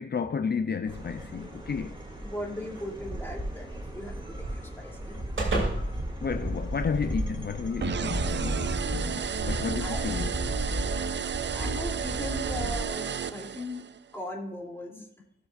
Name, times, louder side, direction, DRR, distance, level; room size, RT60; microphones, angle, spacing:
voice 1, 0.0-1.9 6.2-10.3, left 6 dB, 55° left, 0.5 m, -32 dB
sound 1, 0.9-12.9, right 1 dB, 25° right, 2.4 m, -34 dB
voice 2, 2.2-5.2 9.8-10.1 11.5-13.8 14.1-15.0, left 1 dB, 10° left, 2.9 m, -38 dB
sound 2, 2.8-7.2, right 2 dB, 90° right, 2.8 m, -37 dB
sound 3, 7.8-14.0, right 7 dB, 65° right, 0.4 m, -33 dB
18.0 x 6.7 x 2.5 m
wide cardioid pair, 85°, 20 cm